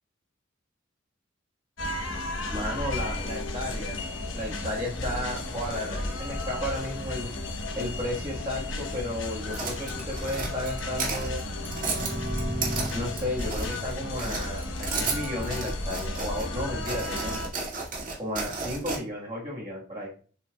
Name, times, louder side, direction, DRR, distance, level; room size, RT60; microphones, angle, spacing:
sound 1, 1.8-17.5, left 2 dB, 85° left, 1.1 m, -34 dB
voice 1, 2.5-4.0 4.3-7.3 7.7-11.5 12.9-17.4 18.2-20.1, left 1 dB, 25° right, -6 dB, 1.5 m, -33 dB
sound 2, 9.5-13.9 14.2-16.5 16.8-19.0, right 4 dB, 40° right, 2.0 m, -33 dB
sound 3, 11.5-15.2, right 1 dB, 55° right, 2.2 m, -37 dB
7.5 x 5.7 x 2.3 m, 0.41 s
head